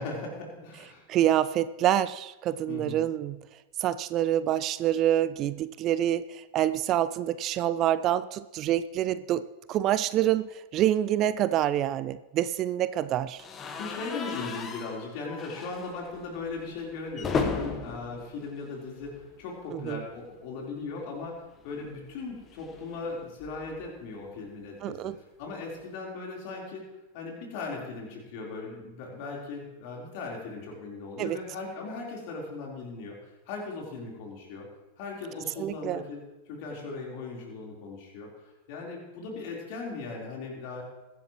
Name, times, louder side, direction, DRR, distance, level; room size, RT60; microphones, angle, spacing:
voice 1, 0.0-1.0 2.7-3.0 13.8-25.0 25.4-26.9 27.1-34.7 35.0-36.2 36.5-40.8, left 3 dB, 45° left, -1 dB, 4.1 m, -38 dB
voice 2, 1.1-3.4 3.8-9.4 9.7-13.4 19.7-20.0 24.8-25.2 31.2-31.4 35.6-36.0, right 12 dB, 35° right, 15 dB, 0.4 m, -26 dB
sound 1, 13.4-19.4 19.7-19.9 20.2-20.3 21.5-23.9, left 5 dB, 25° left, 1.2 m, -36 dB
22.0 x 10.5 x 3.1 m, 1.1 s
figure-of-eight pair, 90°, 0 cm